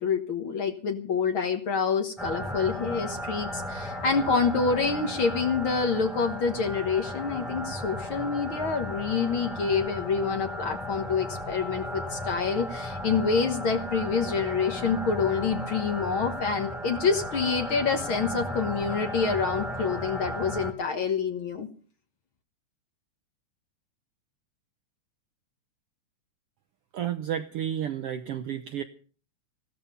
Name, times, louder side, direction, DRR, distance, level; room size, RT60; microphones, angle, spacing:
voice 1, 0.0-21.7, left 5 dB, 55° left, 6 dB, 1.7 m, -27 dB
sound 1, 2.2-20.7, equal, ahead, 2.1 m, -35 dB
voice 2, 26.9-28.8, right 10 dB, 70° right, 8 dB, 1.4 m, -31 dB
15.5 x 13.0 x 5.4 m, 0.42 s
omnidirectional pair, 3.5 m